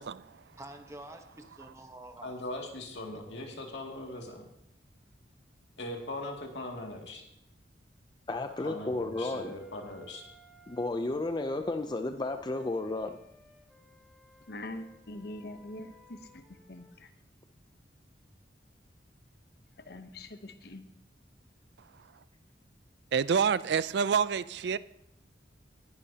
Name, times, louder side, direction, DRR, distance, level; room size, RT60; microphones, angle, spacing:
voice 1, 0.4-2.4 3.1-3.2, right 1 dB, 15° right, 1.0 m, -48 dB
voice 2, 2.2-4.4 5.8-7.2 8.6-10.2, left 1 dB, 75° left, 2.4 m, -40 dB
voice 3, 8.3-9.5 10.7-13.2, left 2 dB, 25° left, 0.4 m, -32 dB
Wind instrument woodwind instrument, 9.1-11.8 12.3-16.9, left 1 dB, ahead, 1.9 m, -59 dB
voice 4, 14.5-16.4 16.7-17.1 19.9-20.8, left 1 dB, 60° left, 0.9 m, -43 dB
voice 5, 23.1-24.8, right 6 dB, 65° right, 0.4 m, -27 dB
19.0 x 11.0 x 2.8 m
head